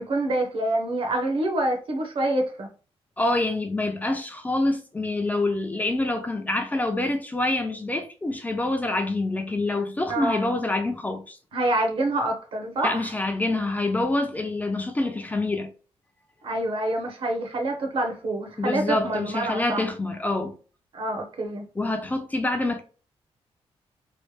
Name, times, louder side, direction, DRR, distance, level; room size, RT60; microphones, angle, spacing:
voice 1, 0.0-2.7 10.1-10.5 11.5-13.1 16.4-19.8 20.9-21.6, right 1 dB, 55° right, 1.0 m, -26 dB
voice 2, 3.2-11.4 12.8-15.7 18.6-20.5 21.8-22.8, left 2 dB, 15° left, 0.5 m, -26 dB
3.2 x 2.1 x 3.1 m
cardioid pair, 125°, 11 cm